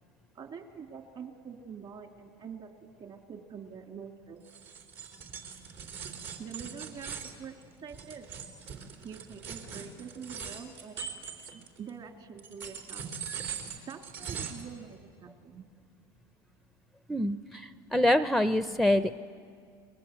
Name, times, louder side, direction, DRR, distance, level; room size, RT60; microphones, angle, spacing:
voice 1, 0.3-4.4 6.4-8.3 9.0-11.0 11.8-13.1 13.8-15.7, right 6 dB, 45° right, 4 dB, 3.2 m, -45 dB
sound 1, 4.4-11.9 12.4-14.7, right 6 dB, 65° right, 3.8 m, -41 dB
voice 2, 17.1-19.2, left 1 dB, ahead, 11 dB, 0.6 m, -26 dB
29.5 x 22.0 x 8.3 m, 2.3 s
supercardioid pair, 100°, 12 cm